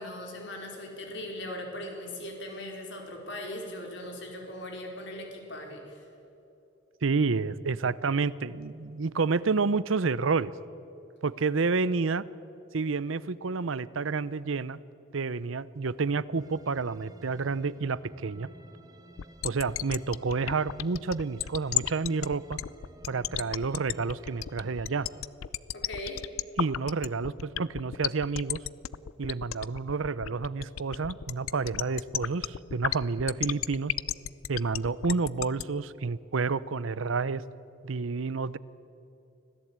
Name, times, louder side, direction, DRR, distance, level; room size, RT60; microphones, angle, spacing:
voice 1, 0.0-6.0 25.7-26.2, left 1 dB, 60° left, 2 dB, 4.7 m, -39 dB
voice 2, 7.0-10.5 11.2-12.2 12.7-14.8 15.1-18.5 19.4-22.6 23.1-25.1 26.6-28.6 29.2-33.9 34.5-37.4 37.8-38.6, right 4 dB, 75° right, 18 dB, 0.7 m, -29 dB
sound 1, 16.4-25.2, right 1 dB, 20° right, 1.6 m, -54 dB
sound 2, 19.2-35.6, left 11 dB, 90° left, 0.5 m, -32 dB
25.5 x 17.0 x 8.8 m, 2.9 s
head